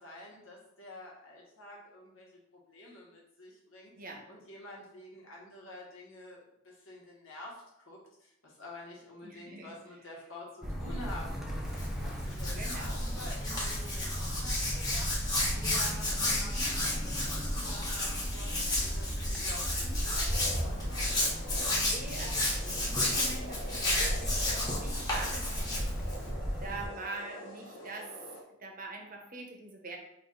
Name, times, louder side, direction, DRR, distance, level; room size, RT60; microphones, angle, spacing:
voice 1, 0.0-2.3 2.5-3.9 4.3-11.6 12.0-15.1 15.5-18.5 18.8-21.2, left 1 dB, 90° left, -4 dB, 1.3 m, -49 dB
voice 2, 9.2-9.8 12.5-13.0 16.1-16.7 21.7-26.0 26.6-28.1 28.6-30.0, right 3 dB, 45° right, 2 dB, 0.7 m, -44 dB
sound 1, 10.6-26.9, equal, ahead, 0.6 m, -36 dB
Hands, 11.6-26.3, left 1 dB, 20° left, 1.1 m, -33 dB
sound 2, 20.3-28.4, left 1 dB, 70° left, 0.8 m, -46 dB
3.9 x 2.6 x 3.8 m, 0.81 s
head